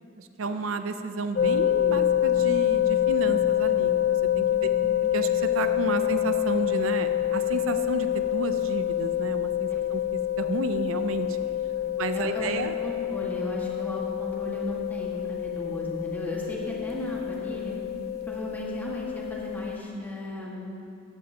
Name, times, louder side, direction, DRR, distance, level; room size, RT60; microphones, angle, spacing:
voice 1, 0.2-4.7 5.1-11.4 12.0-12.7, right 3 dB, 85° right, 9 dB, 0.5 m, -32 dB
sound 1, 1.4-19.8, left 11 dB, 50° left, 0.3 m, -27 dB
voice 2, 4.6-5.0 11.8-12.5 12.8-17.7 18.3-20.7, equal, 10° left, -4 dB, 1.7 m, -35 dB
15.0 x 11.0 x 2.9 m, 2.6 s
head